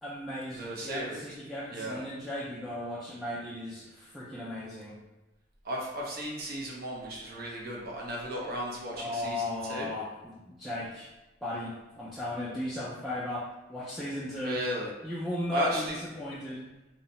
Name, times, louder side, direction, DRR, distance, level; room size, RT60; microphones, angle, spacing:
voice 1, 0.0-5.0 9.0-11.1 11.4-14.6 15.0-16.7, left 1 dB, ahead, -9 dB, 0.3 m, -36 dB
voice 2, 0.6-1.2 1.7-2.0 5.6-9.9 14.4-14.9 15.5-15.9, right 1 dB, 55° right, -2 dB, 0.6 m, -35 dB
2.7 x 2.0 x 2.9 m, 1.0 s
head